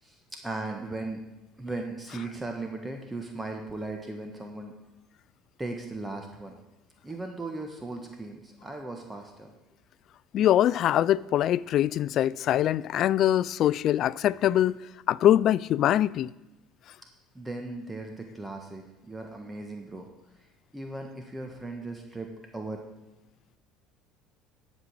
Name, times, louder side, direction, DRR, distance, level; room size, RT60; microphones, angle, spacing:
voice 1, 0.0-1.2 1.6-4.7 5.6-6.6 7.0-9.5 17.3-20.1 20.4-20.5 20.7-22.8, right 2 dB, 15° right, 1.4 m, -37 dB
voice 2, 10.3-14.8 15.1-16.3, left 12 dB, 55° left, 0.3 m, -23 dB
11.5 x 5.3 x 8.3 m
hypercardioid pair, 75°, 0 cm